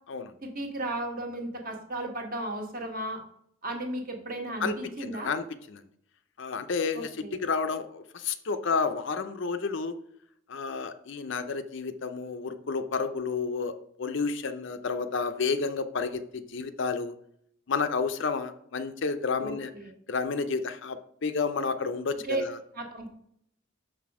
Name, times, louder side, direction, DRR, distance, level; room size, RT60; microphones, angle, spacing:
voice 1, 0.4-3.2 3.6-5.3 6.9-7.4 19.4-19.9 22.2-22.4 22.7-23.1, right 1 dB, 40° right, 2 dB, 1.5 m, -35 dB
voice 2, 4.6-5.8 6.4-10.0 10.5-17.2 17.7-19.7 20.1-22.6, left 4 dB, 60° left, 10 dB, 0.5 m, -31 dB
6.3 x 6.0 x 4.8 m, 0.69 s
head